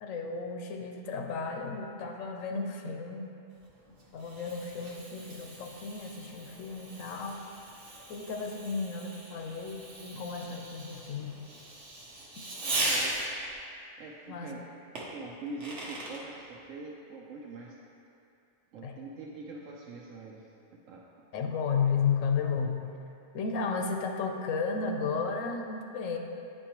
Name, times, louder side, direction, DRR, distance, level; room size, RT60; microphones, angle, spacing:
voice 1, 0.0-3.3 4.1-7.5 8.1-11.4 14.3-14.5 18.8-19.0 21.3-22.8 23.3-26.2, left 5 dB, 85° left, 3 dB, 1.0 m, -33 dB
Fireworks, 3.6-13.5 14.9-16.2, right 1 dB, 65° right, 1.3 m, -38 dB
voice 2, 12.6-13.1 14.0-14.7 15.1-17.7 18.7-20.5 20.9-21.1, right 3 dB, 85° right, -3 dB, 1.0 m, -43 dB
8.9 x 4.4 x 2.9 m, 2.6 s
omnidirectional pair, 1.3 m